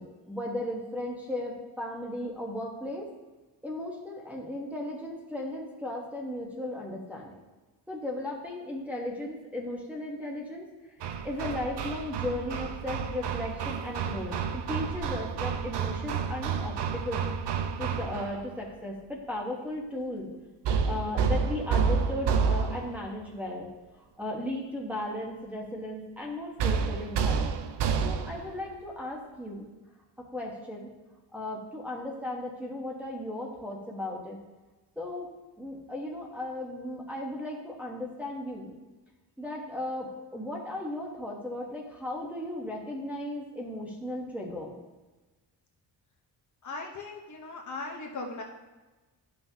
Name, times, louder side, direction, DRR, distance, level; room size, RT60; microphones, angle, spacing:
voice 1, 0.0-3.1 3.6-7.3 7.9-10.6 11.2-17.2 17.8-20.3 20.8-23.7 24.0-27.5 28.0-29.6 30.2-30.9 31.3-34.4 35.0-35.3 35.6-38.7 39.4-44.8, left 1 dB, 5° right, -4 dB, 1.1 m, -36 dB
Hammer, 11.0-18.4 20.6-23.1 26.6-28.5, right 6 dB, 75° right, 0.7 m, -29 dB
voice 2, 46.6-48.4, left 3 dB, 45° left, 0 dB, 1.0 m, -38 dB
11.5 x 5.8 x 2.8 m, 1.2 s
wide cardioid pair, 170°, 42 cm